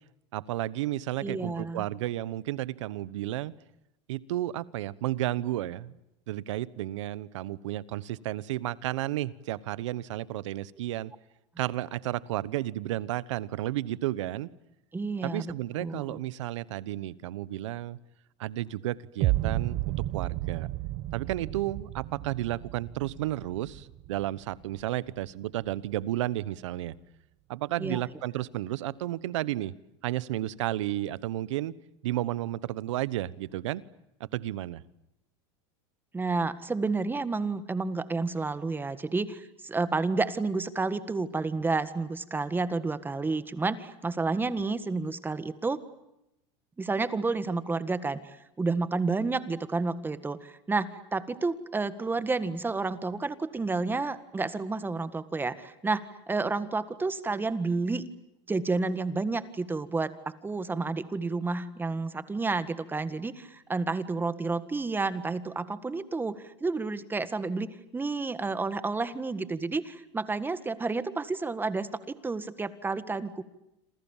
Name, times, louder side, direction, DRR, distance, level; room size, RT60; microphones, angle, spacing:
voice 1, 0.3-3.5 4.1-6.0 6.3-11.1 11.6-14.5 15.2-18.0 18.4-19.8 20.1-20.7 21.1-26.9 27.5-29.7 30.0-31.7 32.0-33.8 34.2-34.8, right 14 dB, 85° right, 19 dB, 1.1 m, -32 dB
voice 2, 1.2-1.9 14.9-16.2 27.8-28.0 36.1-45.8 46.8-58.0 58.5-60.1 60.4-73.4, right 3 dB, 15° right, 13 dB, 1.7 m, -30 dB
sound 1, 19.2-25.2, right 16 dB, 50° right, 1.2 m, -33 dB
27.5 x 27.5 x 7.3 m, 0.87 s
supercardioid pair, 120°, 15 cm